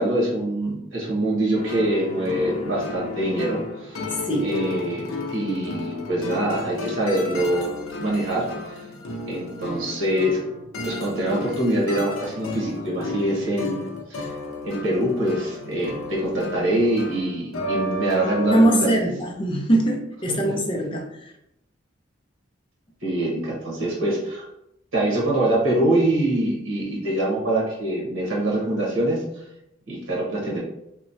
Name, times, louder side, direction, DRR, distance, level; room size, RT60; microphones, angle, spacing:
voice 1, 0.0-4.0 4.4-7.7 8.0-8.8 9.2-10.4 10.8-13.8 14.1-14.3 14.6-19.1 20.4-20.5 23.0-24.4 24.9-29.2 29.9-30.6, right 1 dB, 80° right, -4 dB, 1.1 m, -24 dB
sound 1, 1.5-18.7, left 2 dB, 85° left, 0.5 m, -33 dB
voice 2, 18.5-21.3, right 1 dB, 25° left, 0 dB, 0.5 m, -22 dB
2.9 x 2.2 x 2.6 m, 0.82 s
head